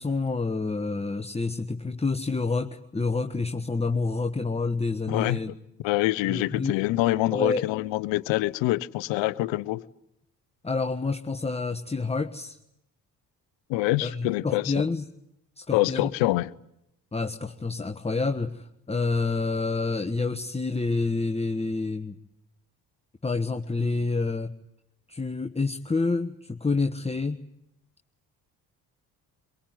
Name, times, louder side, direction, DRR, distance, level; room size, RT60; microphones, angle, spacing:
voice 1, 0.0-5.5 6.3-6.8 7.3-7.6 10.6-12.6 14.0-15.1 15.6-16.1 17.1-22.2 23.2-24.5 25.1-27.4, left 3 dB, 15° left, 1.3 m, -28 dB
voice 2, 5.1-5.4 5.8-9.8 13.7-14.9 15.7-16.5, left 18 dB, 70° left, 1.0 m, -25 dB
23.5 x 23.0 x 9.5 m
hypercardioid pair, 50°, 47 cm